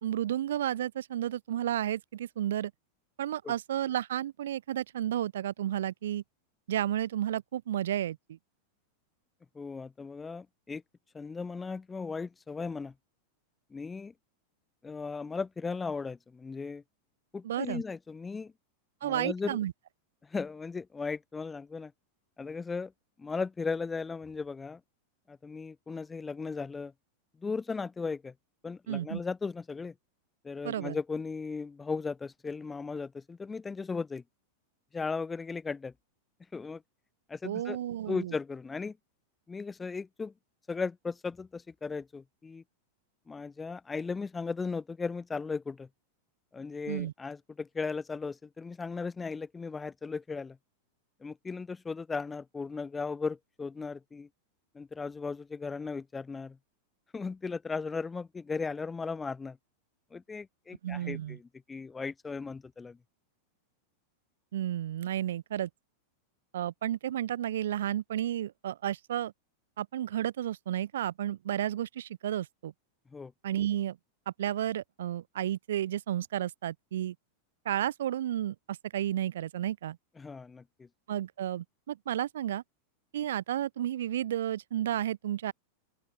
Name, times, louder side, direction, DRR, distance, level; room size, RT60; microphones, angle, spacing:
voice 1, 0.0-2.7 3.2-6.2 6.7-8.4 17.4-17.8 19.0-19.7 28.9-29.2 30.6-31.0 37.4-38.3 46.9-47.1 60.8-61.4 64.5-65.7 66.5-69.3 69.8-72.7 73.4-74.0 74.3-77.2 77.7-80.0 81.1-82.6 83.1-85.5, right 11 dB, 60° right, 0.4 m, -32 dB
voice 2, 9.6-10.8 11.1-12.9 13.7-14.1 14.8-16.8 17.3-18.5 19.0-19.6 20.2-21.9 22.4-22.9 23.2-24.8 25.3-26.9 27.4-28.3 28.6-29.9 30.4-34.2 34.9-35.9 36.5-36.8 37.3-37.8 38.1-39.0 39.5-40.3 40.7-42.6 43.3-45.9 46.5-50.6 51.2-54.3 54.7-56.6 57.1-59.6 60.1-63.0 73.1-73.3 80.2-80.9, left 4 dB, 15° left, 0.3 m, -36 dB
open air
figure-of-eight pair, 90°, 0 cm